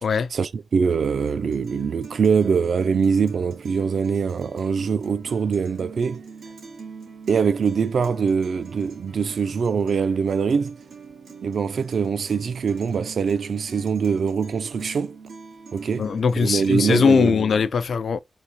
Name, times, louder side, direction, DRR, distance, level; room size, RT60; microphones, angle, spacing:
voice 1, 0.3-6.2 7.3-10.8 11.4-15.2 15.7-16.1 16.4-17.4, right 6 dB, 65° right, 0.3 m, -23 dB
Guitar, 1.0-17.0, right 5 dB, 80° right, 1.9 m, -43 dB
voice 2, 16.0-18.2, left 5 dB, 60° left, 0.3 m, -20 dB
4.0 x 2.8 x 3.0 m
wide cardioid pair, 165°, 0 cm